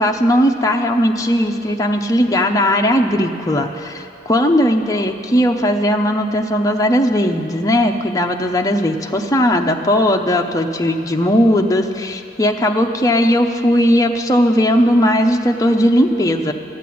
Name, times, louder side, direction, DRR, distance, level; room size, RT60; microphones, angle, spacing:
voice 1, 0.0-16.5, equal, 20° left, 3 dB, 0.7 m, -17 dB
12.5 x 9.3 x 8.5 m, 2.7 s
head